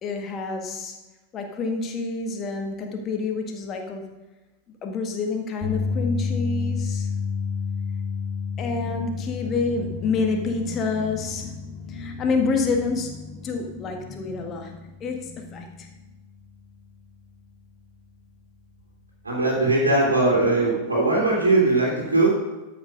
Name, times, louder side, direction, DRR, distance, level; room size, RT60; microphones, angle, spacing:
voice 1, 0.0-1.0 1.3-4.1 4.8-7.1 8.5-16.0, left 4 dB, 30° left, 3 dB, 1.7 m, -28 dB
sound 1, 5.6-17.9 18.2-18.5 20.6-20.7, left 5 dB, ahead, 2.4 m, -32 dB
voice 2, 19.2-22.3, right 2 dB, 75° right, -6 dB, 2.7 m, -20 dB
13.0 x 5.8 x 5.3 m, 1.1 s
figure-of-eight pair, 90°, 0 cm